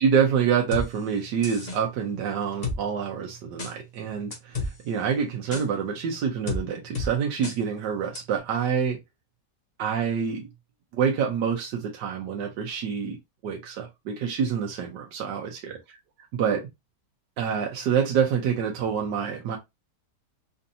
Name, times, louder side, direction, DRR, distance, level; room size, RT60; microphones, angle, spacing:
voice 1, 0.0-9.0 9.8-10.5 10.9-13.2 13.4-15.7 16.3-16.6 17.4-19.6, right 7 dB, 80° right, 1.4 m, -26 dB
sound 1, 0.7-0.9 1.4-1.8 2.6-2.8 3.6-3.7 4.3-4.7 5.5-5.6 6.5-6.6 7.0-7.1 7.4-7.6 8.2-8.3, left 3 dB, 30° left, 1.1 m, -30 dB
4.3 x 2.6 x 2.7 m
omnidirectional pair, 1.8 m